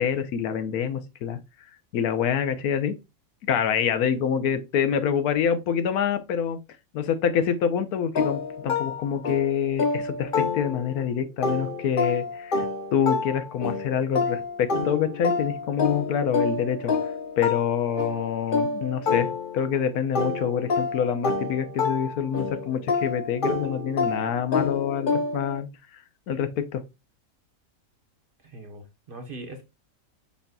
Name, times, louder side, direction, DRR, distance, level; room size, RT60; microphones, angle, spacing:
voice 1, 0.0-1.4 1.9-2.9 3.5-6.6 6.9-16.9 17.4-19.3 19.5-25.7 26.3-26.8, left 8 dB, 85° left, 1.2 m, -26 dB
sound 1, 8.2-11.0 11.4-19.8 20.2-25.6, left 4 dB, 45° left, 0.7 m, -28 dB
voice 2, 28.4-29.6, right 2 dB, 40° right, 1.2 m, -41 dB
5.6 x 4.1 x 2.2 m
omnidirectional pair, 1.5 m